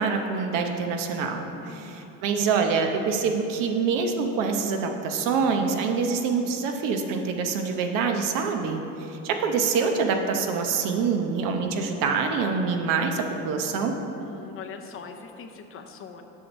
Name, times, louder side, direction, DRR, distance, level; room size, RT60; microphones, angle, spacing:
voice 1, 0.0-14.0, right 5 dB, 75° right, 4 dB, 0.9 m, -25 dB
voice 2, 1.6-2.1 14.2-16.2, left 5 dB, 40° left, 5 dB, 0.7 m, -42 dB
7.4 x 6.2 x 5.4 m, 2.9 s
cardioid pair, 140°, 32 cm